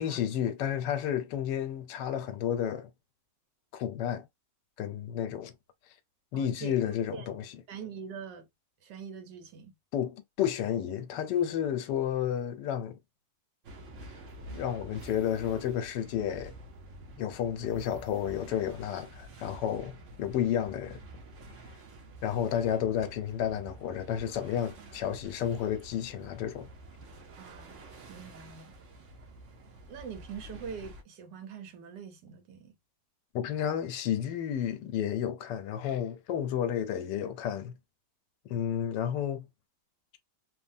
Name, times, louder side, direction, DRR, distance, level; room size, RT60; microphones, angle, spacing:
voice 1, 0.0-2.9 3.7-4.3 4.8-5.5 6.3-7.4 9.9-13.0 14.5-16.5 17.2-21.0 22.2-26.7 33.3-37.8 38.4-39.5, left 9 dB, 80° left, 1.2 m, -31 dB
voice 2, 6.3-7.3 7.7-8.5 8.8-9.8 27.4-27.7 28.1-28.7 29.9-32.7, right 6 dB, 80° right, 1.4 m, -43 dB
sound 1, 13.6-31.0, right 1 dB, 60° right, 0.8 m, -48 dB
3.2 x 2.1 x 2.6 m
omnidirectional pair, 1.9 m